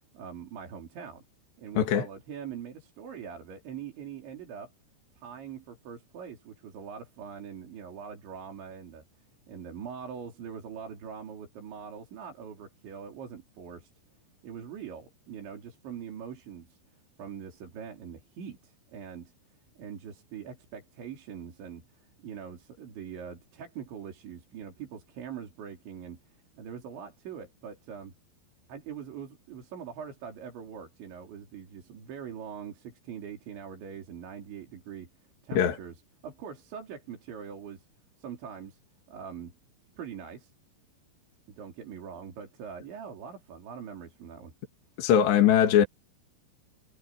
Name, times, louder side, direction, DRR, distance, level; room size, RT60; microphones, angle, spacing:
voice 1, 0.1-1.2 1.6-4.7 5.1-9.0 9.5-13.9 14.4-16.8 17.2-19.3 19.8-21.9 22.2-26.2 26.5-28.1 28.7-35.1 35.4-37.9 38.2-38.8 39.1-39.6 40.0-40.5 41.5-44.5, right 7 dB, 75° right, 6.2 m, -42 dB
voice 2, 1.8-2.1 35.5-35.8 45.0-45.9, left 9 dB, 70° left, 4.4 m, -21 dB
omnidirectional pair, 5.3 m